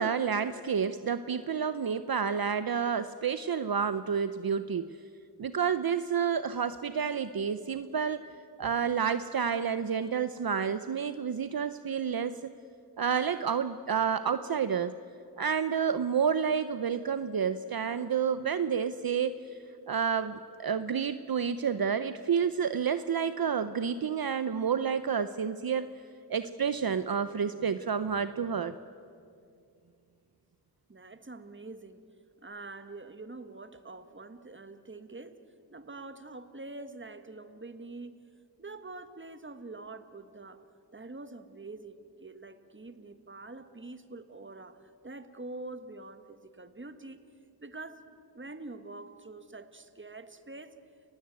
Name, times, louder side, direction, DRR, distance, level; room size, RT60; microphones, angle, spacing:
voice 1, 0.0-4.8 5.4-8.2 8.6-12.4 13.0-14.9 15.4-19.3 19.9-25.9 26.3-28.7, right 7 dB, 60° right, 12 dB, 0.8 m, -29 dB
voice 2, 30.9-32.0 32.4-35.4 35.7-38.2 38.6-40.6 40.9-47.2 47.6-48.0 48.3-50.7, right 2 dB, 30° right, 10 dB, 1.6 m, -45 dB
29.5 x 16.5 x 9.2 m, 2.4 s
wide cardioid pair, 65°, 41 cm